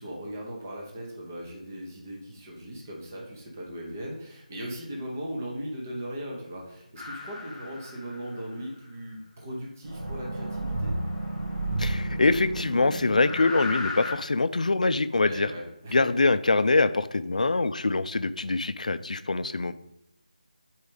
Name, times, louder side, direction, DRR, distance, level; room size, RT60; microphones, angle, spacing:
voice 1, 0.0-10.9 15.2-16.1, equal, 20° right, -2 dB, 0.8 m, -38 dB
sound 1, 7.0-8.4 9.8-14.1, equal, 80° right, 2.3 m, -32 dB
voice 2, 11.8-15.5 15.9-19.7, left 3 dB, 60° left, 13 dB, 0.4 m, -24 dB
4.8 x 4.4 x 5.1 m, 0.86 s
figure-of-eight pair, 175°, 4 cm